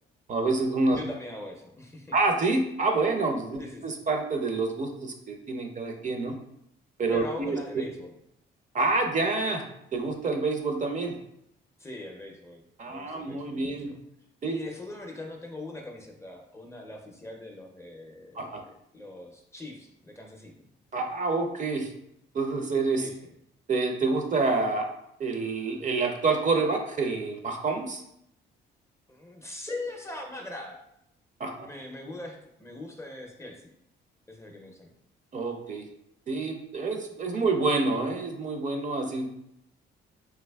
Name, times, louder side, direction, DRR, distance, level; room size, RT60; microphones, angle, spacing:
voice 1, 0.3-1.0 2.1-6.3 7.0-7.8 8.7-9.6 9.9-11.2 12.8-13.9 14.4-14.5 18.4-18.6 20.9-21.9 22.3-23.1 23.7-24.9 25.2-28.0 31.4-31.7 35.3-35.9 36.3-39.3, right 3 dB, 40° right, 4 dB, 0.5 m, -27 dB
voice 2, 0.9-2.1 3.6-3.9 7.1-8.1 11.8-14.0 14.5-20.7 23.0-23.3 29.1-30.8 31.6-33.7 34.3-34.9, left 2 dB, 15° left, 2 dB, 0.5 m, -41 dB
3.3 x 2.8 x 2.2 m, 0.76 s
cardioid pair, 90°, 20 cm